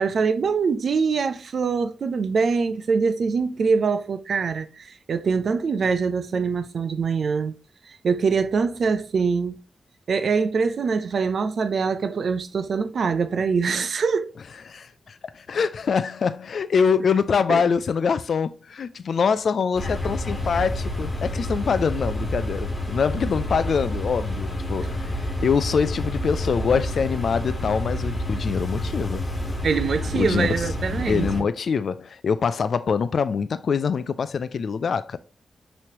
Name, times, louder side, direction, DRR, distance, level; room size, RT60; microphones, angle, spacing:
voice 1, 0.0-7.5 7.9-9.6 10.1-14.3 17.5-17.6 29.6-31.3, right 5 dB, 70° right, 0.5 m, -24 dB
voice 2, 14.7-25.1 25.4-29.3 30.1-30.5 31.1-35.2, left 6 dB, 70° left, 0.3 m, -24 dB
sound 1, 19.7-31.4, left 1 dB, 35° left, 1.8 m, -29 dB
5.9 x 3.1 x 2.9 m
cardioid pair, 80°, 0 cm